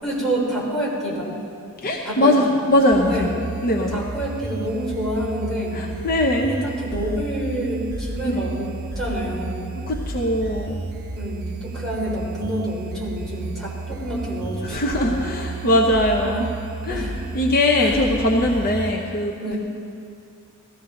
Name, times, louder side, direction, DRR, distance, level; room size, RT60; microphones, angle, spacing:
voice 1, 0.0-1.4 2.0-2.4 3.1-3.4 3.8-5.8 6.5-9.7 11.1-15.5 16.2-16.4 16.9-17.2 17.8-17.9 19.4-19.6, right 1 dB, ahead, -7 dB, 4.0 m, -28 dB
voice 2, 1.8-3.3 3.6-4.0 5.7-6.6 8.2-8.4 9.9-10.8 14.6-16.5 16.8-17.0 17.3-19.6, left 1 dB, 45° left, 0 dB, 0.8 m, -21 dB
sound 1, 2.9-18.9, right 3 dB, 50° right, 0.9 m, -32 dB
18.0 x 14.0 x 3.9 m, 2.5 s
head